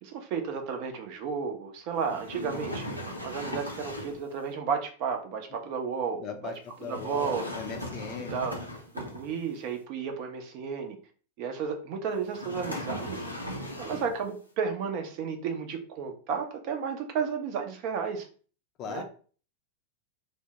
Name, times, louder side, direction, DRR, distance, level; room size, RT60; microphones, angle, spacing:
voice 1, 0.0-2.8 3.2-6.5 6.8-7.5 8.3-8.6 8.9-11.0 11.4-13.2 13.8-18.3 18.9-19.0, right 6 dB, 45° right, 5 dB, 0.6 m, -33 dB
sound 1, 2.0-4.3 6.8-9.6 12.3-14.3, left 1 dB, 90° left, 0.6 m, -38 dB
voice 2, 6.2-8.4 18.8-19.0, left 6 dB, 35° left, 5 dB, 0.5 m, -38 dB
3.5 x 2.1 x 2.8 m, 0.41 s
figure-of-eight pair, 90°, 0 cm